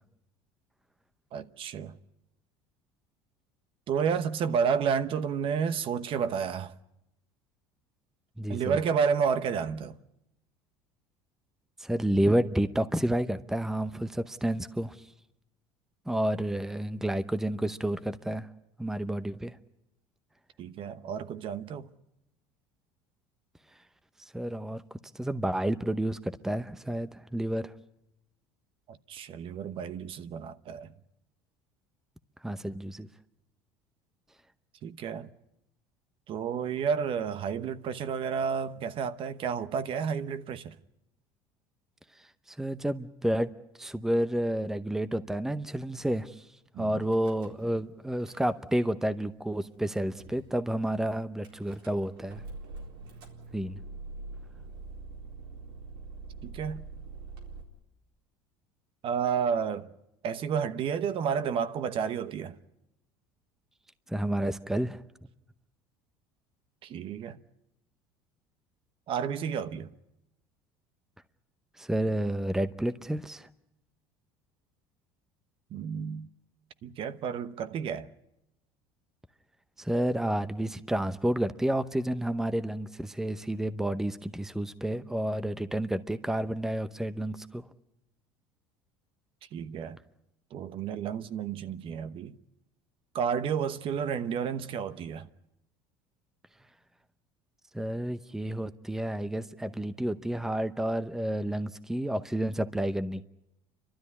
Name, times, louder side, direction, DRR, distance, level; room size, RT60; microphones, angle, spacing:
voice 1, 1.3-2.0 3.9-6.7 8.5-10.0 20.6-21.9 28.9-30.9 34.8-35.3 36.3-40.7 46.7-47.0 56.4-56.8 59.0-59.9 60.2-62.5 66.8-67.4 69.1-69.9 75.7-76.3 76.8-78.1 89.5-90.0 90.5-92.3 93.1-95.3, right 7 dB, 50° right, 1.0 m, -31 dB
voice 2, 8.4-8.8 11.8-15.0 16.1-18.5 18.8-19.6 24.2-24.8 25.1-27.7 32.4-33.1 42.5-43.5 43.8-46.5 46.8-52.4 53.5-53.8 64.1-65.0 71.8-73.5 79.8-87.6 97.7-103.2, right 1 dB, 5° right, 0.8 m, -30 dB
Car / Engine starting / Idling, 47.0-47.8 48.1-48.9 49.5-49.6 49.8-49.9 50.2-50.5 51.4-57.6, right 3 dB, 90° right, 4.0 m, -44 dB
30.0 x 13.0 x 9.7 m
supercardioid pair, 100°, 12 cm